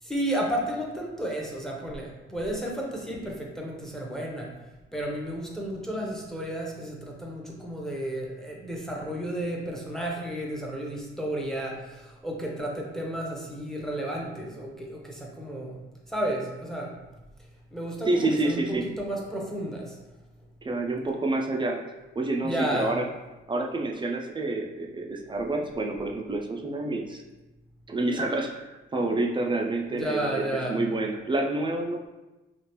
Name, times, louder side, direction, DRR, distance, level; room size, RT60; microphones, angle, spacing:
voice 1, 0.0-4.5 4.9-15.8 16.1-17.0 17.7-20.0 22.4-22.9 29.9-30.8, right 1 dB, ahead, -1 dB, 0.7 m, -32 dB
voice 2, 18.1-18.9 20.6-21.8 22.2-23.1 23.5-27.2 27.9-32.1, right 2 dB, 25° right, 1 dB, 0.4 m, -28 dB
3.2 x 2.5 x 2.9 m, 1.1 s
cardioid pair, 90°, 20 cm